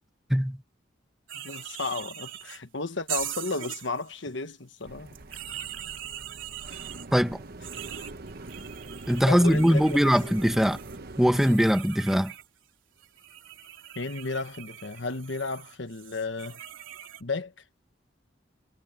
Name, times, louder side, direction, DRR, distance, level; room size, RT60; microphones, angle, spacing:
voice 1, 1.3-5.1 9.3-10.2 13.9-16.6 17.2-17.5, left 3 dB, 70° left, 1.4 m, -33 dB
sound 1, 1.3-2.6 3.1-4.2 5.1-7.1 7.6-12.5 13.0-17.2, right 11 dB, 90° right, 3.3 m, -41 dB
sound 2, 4.8-11.6, right 2 dB, 55° right, 1.0 m, -43 dB
voice 2, 9.1-10.8 11.2-12.3, equal, ahead, 1.2 m, -21 dB
head